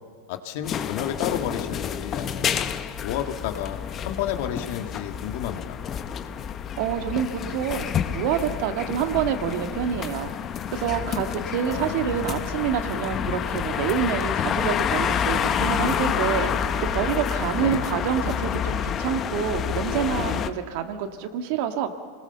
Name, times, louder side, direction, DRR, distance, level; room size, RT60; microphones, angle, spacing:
voice 1, 0.3-2.6 3.0-3.8 4.1-5.8 11.7-12.4 17.5-17.8, left 10 dB, 65° left, 6 dB, 1.8 m, -31 dB
sound 1, 0.6-20.5, left 8 dB, 30° left, 1.0 m, -28 dB
voice 2, 6.8-10.3 10.7-16.5 16.8-21.9, right 9 dB, 60° right, 7 dB, 1.8 m, -27 dB
26.0 x 20.0 x 7.0 m, 2.1 s
supercardioid pair, 125°, 0 cm